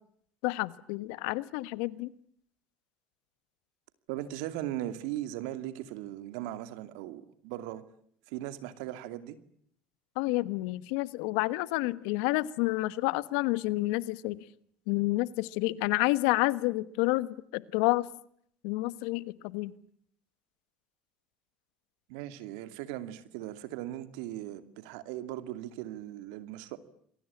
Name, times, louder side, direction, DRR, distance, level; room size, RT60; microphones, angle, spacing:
voice 1, 0.4-2.1 10.2-14.4 14.9-18.1 18.6-19.7, left 20 dB, 75° left, 17 dB, 1.3 m, -29 dB
voice 2, 4.1-7.8 8.3-9.4 22.1-26.8, right 13 dB, 75° right, 11 dB, 2.5 m, -38 dB
28.5 x 23.0 x 8.6 m, 0.68 s
hypercardioid pair, 75°, 4 cm